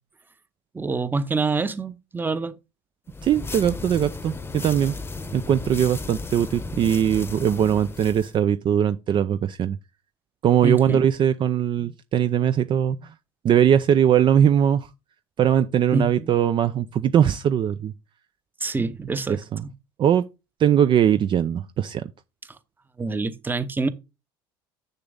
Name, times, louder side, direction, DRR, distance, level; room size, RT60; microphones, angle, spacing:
voice 1, 0.7-2.6 10.6-11.0 15.9-16.3 18.6-19.7 23.0-23.9, right 3 dB, 15° right, 0.9 m, -26 dB
sound 1, 3.1-8.4, left 3 dB, 20° left, 0.9 m, -35 dB
voice 2, 3.2-4.9 5.3-9.8 10.4-13.1 13.4-14.9 15.4-17.9 18.8-18.9 19.3-19.6 20.0-20.2 20.6-22.1, right 9 dB, 40° right, 0.6 m, -20 dB
6.9 x 6.8 x 3.9 m
hypercardioid pair, 85°, 12 cm